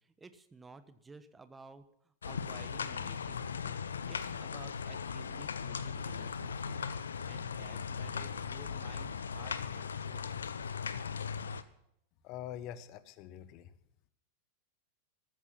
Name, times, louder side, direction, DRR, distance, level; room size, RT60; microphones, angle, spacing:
voice 1, 0.0-3.8 4.0-7.0 7.2-10.3, right 3 dB, 15° right, 12 dB, 1.2 m, -54 dB
sound 1, 2.2-11.6, left 6 dB, 70° left, 0.8 m, -38 dB
voice 2, 12.2-13.7, left 11 dB, 40° left, 14 dB, 1.1 m, -44 dB
14.0 x 14.0 x 5.8 m, 0.73 s
figure-of-eight pair, 90°, 0 cm